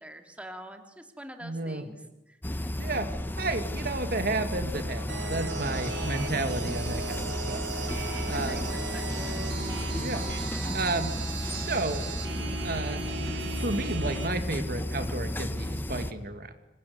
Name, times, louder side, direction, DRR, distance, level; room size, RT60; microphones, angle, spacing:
voice 1, 0.0-2.0 2.3-2.7 5.7-5.8 8.1-9.5, right 1 dB, 5° right, 5 dB, 2.8 m, -46 dB
voice 2, 1.4-1.9 2.8-3.1 3.4-7.6 8.3-8.8 10.0-10.3 10.7-11.1 11.5-12.1 12.6-16.5, right 2 dB, 55° right, 8 dB, 2.3 m, -32 dB
sound 1, 2.4-16.1, left 1 dB, 10° left, 1.2 m, -33 dB
sound 2, 5.1-14.3, right 4 dB, 80° right, 4.0 m, -37 dB
27.0 x 23.0 x 9.6 m, 0.93 s
head